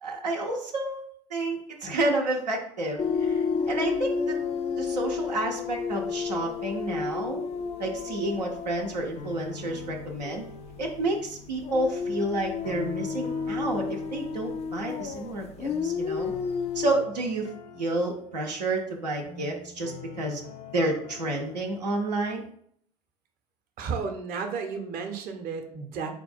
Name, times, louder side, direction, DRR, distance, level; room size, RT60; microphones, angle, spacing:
voice 1, 0.0-1.0 1.3-3.4 3.7-4.4 4.8-7.4 7.8-10.4 10.8-16.3 16.7-20.4 20.7-22.4, right 2 dB, 90° right, 0 dB, 0.7 m, -30 dB
sound 1, 3.0-10.4 10.7-10.9 11.6-16.9, left 6 dB, 30° left, 0.4 m, -31 dB
sound 2, 9.1-22.5, left 5 dB, 75° left, 0.7 m, -45 dB
voice 2, 23.8-26.1, right 5 dB, 45° right, 5 dB, 0.8 m, -33 dB
4.4 x 2.3 x 4.3 m, 0.65 s
hypercardioid pair, 75°, 20 cm